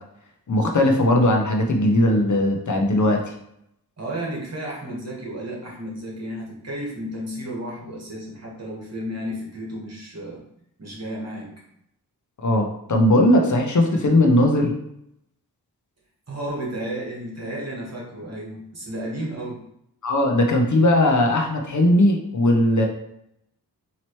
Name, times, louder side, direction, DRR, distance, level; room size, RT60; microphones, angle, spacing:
voice 1, 0.5-3.3 12.4-14.7 20.0-22.9, left 1 dB, 50° left, 2 dB, 0.6 m, -18 dB
voice 2, 4.0-10.4 10.8-11.5 16.3-19.6, right 1 dB, 40° right, -3 dB, 1.4 m, -32 dB
4.2 x 2.9 x 3.0 m, 0.76 s
wide cardioid pair, 80°, 38 cm